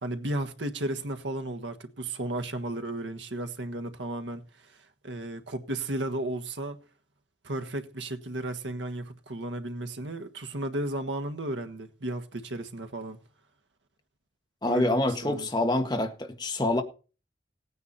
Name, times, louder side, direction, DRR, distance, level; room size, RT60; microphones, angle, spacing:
voice 1, 0.0-4.4 5.0-6.8 7.4-13.2 14.6-15.5, right 1 dB, 80° right, 1.4 m, -34 dB
voice 2, 14.6-16.8, left 1 dB, 25° left, 1.6 m, -26 dB
17.0 x 9.4 x 4.2 m
head